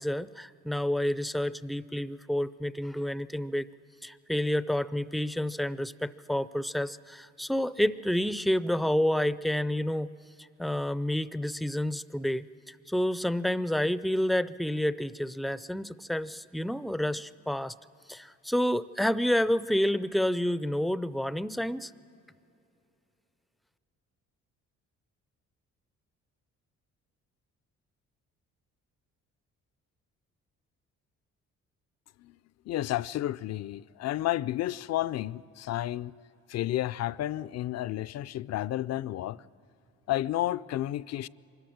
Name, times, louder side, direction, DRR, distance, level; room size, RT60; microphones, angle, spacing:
voice 1, 0.0-3.7 4.0-10.1 10.4-17.7 18.1-21.9, left 1 dB, ahead, 0.4 m, -29 dB
voice 2, 32.7-36.1 36.5-39.4 40.1-41.3, left 14 dB, 60° left, 0.4 m, -31 dB
24.0 x 14.0 x 8.7 m
cardioid pair, 90°, 30 cm